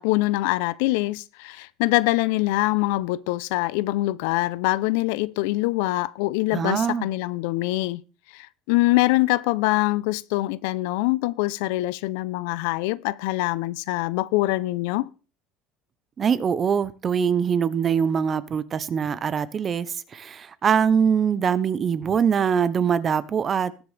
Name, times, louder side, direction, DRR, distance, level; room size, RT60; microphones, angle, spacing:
voice 1, 0.0-8.0 8.3-15.1, left 19 dB, 85° left, 0.5 m, -24 dB
voice 2, 6.5-7.1 16.2-23.7, right 7 dB, 25° right, 0.6 m, -23 dB
20.0 x 7.0 x 3.3 m
cardioid pair, 150°, 0 cm